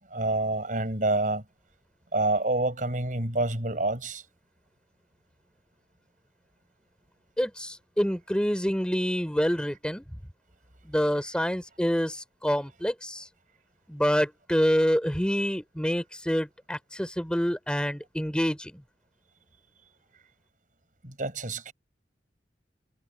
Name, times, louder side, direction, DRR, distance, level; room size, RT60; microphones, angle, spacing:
voice 1, 0.1-1.4 2.1-4.2 21.0-21.7, right 2 dB, 50° right, 6.6 m, -27 dB
voice 2, 7.4-10.0 10.9-13.3 13.9-18.8, equal, 5° left, 4.2 m, -27 dB
head